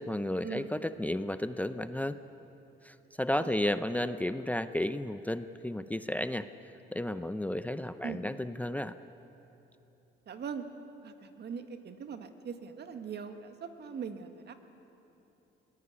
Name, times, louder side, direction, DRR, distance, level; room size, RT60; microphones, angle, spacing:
voice 1, 0.0-2.2 2.8-6.5 6.9-8.9, left 1 dB, 5° left, 11 dB, 0.6 m, -33 dB
voice 2, 10.3-10.6 11.0-14.5, right 6 dB, 60° right, 7 dB, 1.8 m, -41 dB
22.5 x 17.5 x 9.8 m, 3.0 s
cardioid pair, 90°, 20 cm